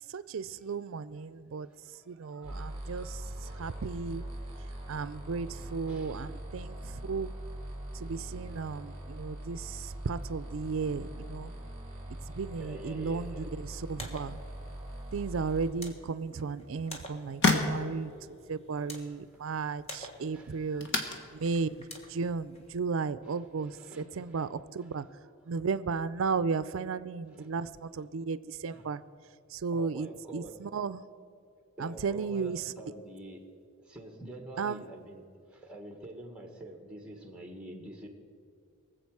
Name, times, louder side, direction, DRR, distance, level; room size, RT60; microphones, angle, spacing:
voice 1, 0.1-1.7 2.1-3.2 3.6-4.2 4.9-7.3 8.0-11.5 12.3-14.4 15.1-18.1 18.5-20.9 21.4-21.7 22.1-25.0 25.5-27.7 27.9-28.4 28.6-29.0 29.5-30.1 30.3-31.0 31.8-32.6 34.6-34.8, right 5 dB, 65° right, 16 dB, 0.4 m, -34 dB
voice 2, 1.6-3.7 5.8-6.6 9.5-9.7 12.0-13.5 14.0-14.1 18.8-19.5 20.3-21.4 23.2-25.6 27.3-27.6 28.7-29.0 29.7-30.6 31.8-33.4 33.8-38.1, right 1 dB, 5° right, 3 dB, 1.5 m, -48 dB
sound 1, 2.4-15.7, right 1 dB, 25° right, 3.1 m, -42 dB
Radio Switch, 13.8-22.8, left 1 dB, 30° left, 1.5 m, -50 dB
sound 2, 16.5-23.8, left 3 dB, 55° left, 1.5 m, -35 dB
23.0 x 7.8 x 4.8 m, 2.4 s
head